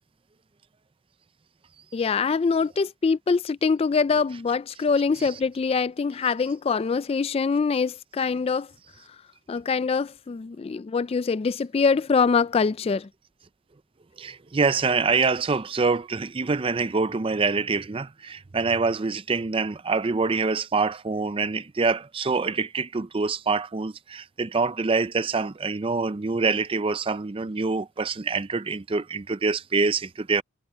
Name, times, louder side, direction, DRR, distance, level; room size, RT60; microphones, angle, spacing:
voice 1, 1.9-8.7 9.5-13.1, left 5 dB, 30° left, 0.3 m, -24 dB
voice 2, 14.2-30.4, right 4 dB, 25° right, 0.5 m, -25 dB
head